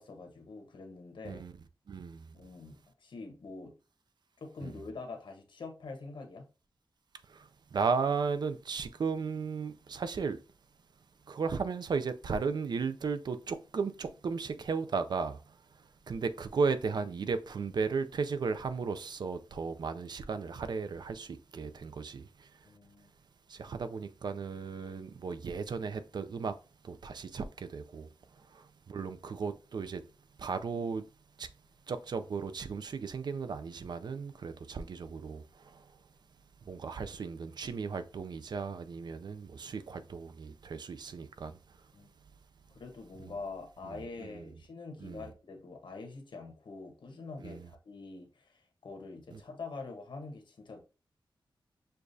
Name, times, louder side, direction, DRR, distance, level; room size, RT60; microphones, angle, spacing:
voice 1, 0.0-1.4 2.3-3.7 4.4-6.5 22.6-23.1 41.9-42.1 42.7-50.8, left 3 dB, 65° left, 0.9 m, -45 dB
voice 2, 1.9-2.3 4.6-4.7 7.3-10.4 11.3-15.4 16.1-22.5 23.5-26.5 26.8-28.1 28.5-30.0 30.4-31.0 31.4-31.5 31.9-35.4 35.7-35.8 36.7-41.6 43.9-44.4 45.0-45.2 47.4-47.7 49.3-49.4, right 5 dB, 55° right, 0.4 m, -35 dB
6.5 x 2.4 x 2.6 m
wide cardioid pair, 175°, 9 cm